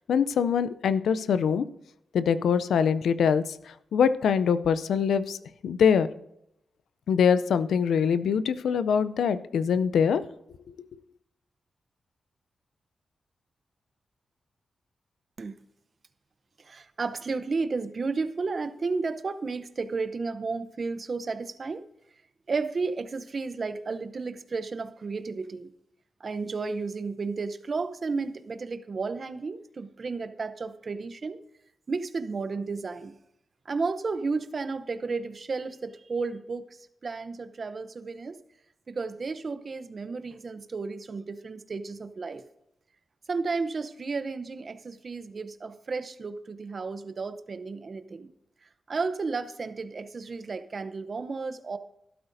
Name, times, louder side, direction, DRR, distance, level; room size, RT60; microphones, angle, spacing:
voice 1, 0.1-1.7 2.1-5.4 5.6-6.1 7.1-10.2 10.7-10.8, left 7 dB, 85° left, 14 dB, 0.4 m, -24 dB
voice 2, 16.6-21.8 22.5-25.7 26.2-31.4 31.9-33.1 33.7-36.7 37.0-38.4 38.9-42.4 43.3-48.3 48.9-51.8, right 4 dB, 55° right, 12 dB, 0.7 m, -33 dB
12.0 x 12.0 x 2.6 m, 0.80 s
cardioid pair, 55°, 0 cm